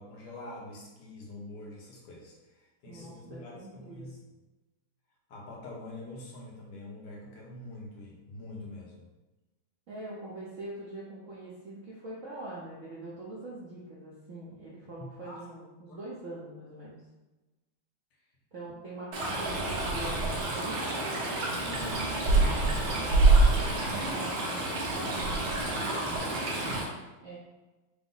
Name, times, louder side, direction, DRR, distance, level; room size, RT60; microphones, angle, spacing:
voice 1, 0.0-4.2 5.3-9.1 14.9-15.4 15.9-16.0, left 2 dB, 70° left, -3 dB, 1.5 m, -45 dB
voice 2, 2.9-4.1 9.9-17.0 18.5-26.5 27.2-27.4, right 2 dB, 65° right, -7 dB, 0.7 m, -43 dB
Stream, 19.1-26.8, right 2 dB, 85° right, 1.7 m, -27 dB
5.0 x 2.0 x 3.8 m, 1.1 s
omnidirectional pair, 2.3 m